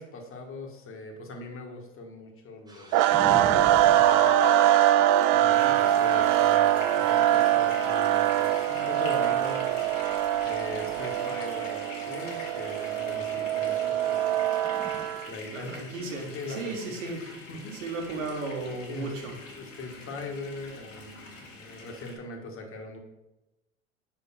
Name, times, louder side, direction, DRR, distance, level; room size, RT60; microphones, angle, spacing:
voice 1, 0.0-4.3 5.3-9.8 10.2-14.3 15.3-15.8 16.3-17.1 17.5-17.7 18.7-19.1 19.6-23.0, left 2 dB, 35° left, 2 dB, 1.5 m, -41 dB
sound 1, 2.7-7.0 7.3-7.6 8.9-9.8 10.2-11.2 14.2-14.3 14.5-15.2, right 3 dB, 10° right, 1.2 m, -36 dB
sound 2, 2.9-15.3, right 12 dB, 55° right, 0.5 m, -23 dB
voice 2, 5.2-5.8 15.5-17.2 17.8-19.3, right 3 dB, 85° right, 2 dB, 1.5 m, -35 dB
sound 3, 5.5-22.2, left 3 dB, 85° left, 2.1 m, -44 dB
5.0 x 4.4 x 5.7 m, 0.98 s
hypercardioid pair, 90°, 37 cm